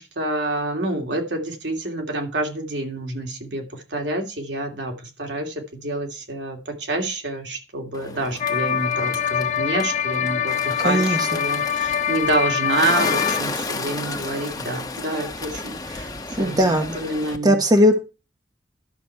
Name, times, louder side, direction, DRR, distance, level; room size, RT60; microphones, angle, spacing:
voice 1, 0.0-16.1 16.4-17.6, right 2 dB, 85° right, 3 dB, 2.6 m, -27 dB
Bird, 7.9-17.4, left 3 dB, 20° left, 1.4 m, -33 dB
sound 1, 8.4-13.4, left 8 dB, 45° left, 0.6 m, -24 dB
voice 2, 10.8-11.3 16.4-17.0 17.4-18.0, equal, 20° right, 6 dB, 1.1 m, -18 dB
11.5 x 7.1 x 4.6 m, 0.30 s
head